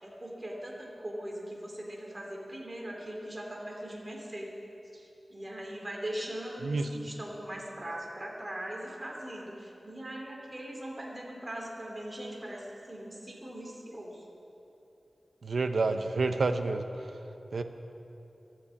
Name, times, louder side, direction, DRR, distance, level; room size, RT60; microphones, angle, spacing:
voice 1, 0.0-4.5 4.9-14.2, right 1 dB, 25° right, -1 dB, 2.7 m, -40 dB
voice 2, 15.4-16.8 17.5-17.6, right 3 dB, 80° right, 8 dB, 0.8 m, -28 dB
13.0 x 10.0 x 8.3 m, 2.9 s
wide cardioid pair, 90°, 0 cm